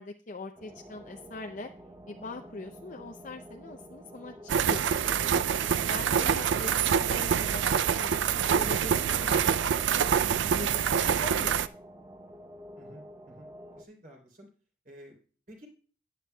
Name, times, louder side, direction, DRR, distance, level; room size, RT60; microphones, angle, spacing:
voice 1, 0.0-1.7 2.1-5.2 5.8-8.3 8.5-9.8 10.2-10.8 11.1-11.6, left 2 dB, 40° left, 4 dB, 0.6 m, -42 dB
sound 1, 0.6-13.8, equal, 20° right, 0.8 m, -49 dB
sound 2, 4.5-11.7, right 7 dB, 65° right, 0.4 m, -26 dB
voice 2, 12.8-13.5 13.8-14.5 14.8-15.2 15.5-15.7, right 1 dB, 45° right, 1 dB, 3.3 m, -52 dB
13.5 x 9.5 x 2.3 m, 0.41 s
head